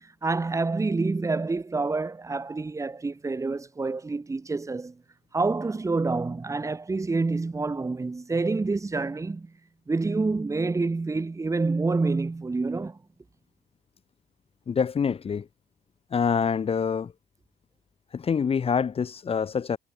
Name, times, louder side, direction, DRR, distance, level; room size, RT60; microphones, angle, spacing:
voice 1, 0.0-5.0 5.3-9.5 9.9-13.0, right 3 dB, 20° right, 2.8 m, -27 dB
voice 2, 14.7-15.5 16.1-17.1 18.1-19.8, left 6 dB, 35° left, 1.9 m, -26 dB
cardioid pair, 110°, 17 cm